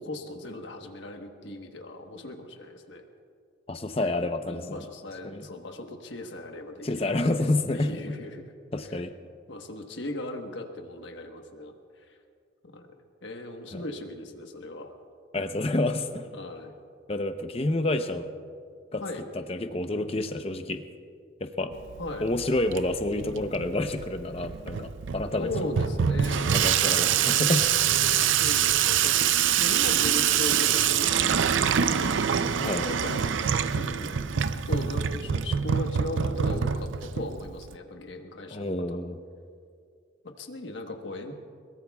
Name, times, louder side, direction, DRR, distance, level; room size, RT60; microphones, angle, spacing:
voice 1, 0.0-3.0 4.5-8.5 8.8-9.0 9.5-11.7 12.0-12.2 12.6-14.9 16.3-16.7 19.0-19.2 22.0-22.3 25.4-27.4 28.3-29.2 29.6-33.2 33.7-39.0 40.2-41.4, left 1 dB, 80° left, 4 dB, 1.3 m, -38 dB
voice 2, 3.7-4.8 5.2-5.5 6.8-7.9 8.7-9.1 13.7-13.8 15.3-16.3 17.1-18.2 18.9-19.0 19.3-20.8 21.4-21.7 22.2-25.5 26.5-27.7 32.6-32.9 38.5-39.2, left 2 dB, 30° left, 8 dB, 0.7 m, -28 dB
Water tap faucet / Sink (filling or washing), 21.7-37.8, right 8 dB, 90° right, 0.5 m, -25 dB
22.5 x 21.5 x 2.3 m, 2.2 s
head